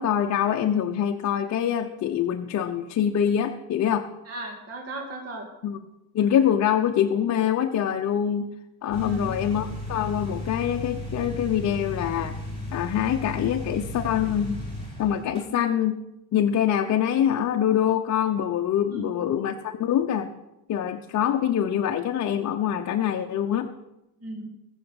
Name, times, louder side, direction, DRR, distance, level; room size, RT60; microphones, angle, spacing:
voice 1, 0.0-4.1 5.6-5.8 6.1-8.5 8.8-12.4 12.7-14.6 15.0-15.9 16.3-20.3 20.7-23.7, left 9 dB, 40° left, 3 dB, 0.9 m, -24 dB
voice 2, 4.3-5.5 9.0-9.3 15.5-15.6 18.9-19.2 24.2-24.5, right 1 dB, 35° right, 1 dB, 2.4 m, -36 dB
sound 1, 8.9-15.4, left 1 dB, 10° left, 6.4 m, -35 dB
18.5 x 7.2 x 7.9 m, 0.94 s
cardioid pair, 130°, 42 cm